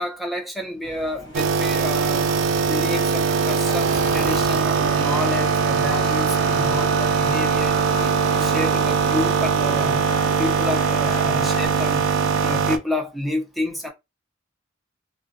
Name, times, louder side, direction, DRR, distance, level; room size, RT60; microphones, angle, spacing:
voice 1, 0.0-2.3 2.7-7.8 8.2-10.0 10.4-12.1 12.4-13.9, left 1 dB, ahead, 0.5 m, -29 dB
sound 1, 0.8-9.7, equal, 85° left, 0.9 m, -39 dB
sound 2, 1.3-12.8, right 5 dB, 80° right, 0.4 m, -21 dB
sound 3, 3.7-11.7, equal, 50° left, 0.8 m, -38 dB
2.4 x 2.0 x 2.6 m
head